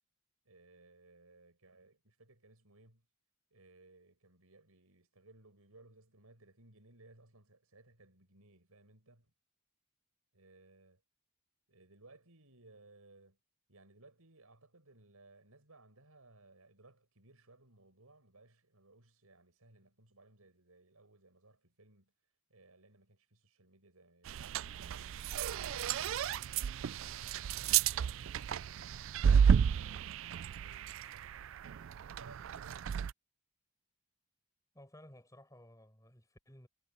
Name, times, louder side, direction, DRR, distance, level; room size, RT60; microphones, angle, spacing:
voice 1, 0.4-3.1 3.5-9.3 10.3-11.0 11.7-13.4 13.7-22.1 22.5-24.9 25.5-32.9, right 2 dB, 85° right, 5.8 m, -62 dB
sound 1, 24.3-33.1, right 7 dB, 60° right, 0.3 m, -32 dB
voice 2, 34.7-36.7, left 1 dB, 15° left, 5.6 m, -57 dB
head